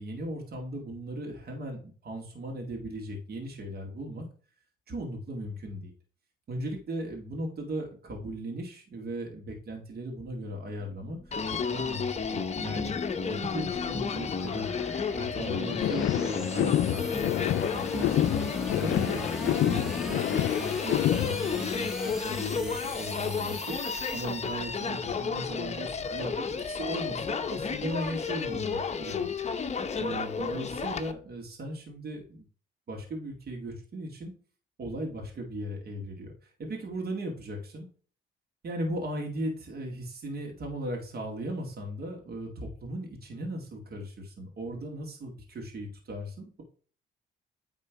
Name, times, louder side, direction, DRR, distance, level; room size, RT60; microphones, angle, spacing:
voice 1, 0.0-4.3 4.9-5.9 6.5-14.7 15.1-18.4 18.8-29.3 30.0-32.5 32.9-34.3 34.8-37.9 38.6-46.6, right 1 dB, 50° right, 1 dB, 2.2 m, -37 dB
sound 1, 10.7-24.9, left 1 dB, ahead, 1.5 m, -44 dB
Human voice, 11.3-31.1, left 5 dB, 35° left, 0.8 m, -32 dB
sound 2, 15.5-21.5, left 13 dB, 70° left, 0.4 m, -28 dB
9.0 x 3.7 x 4.7 m, 0.41 s
cardioid pair, 90°, 20 cm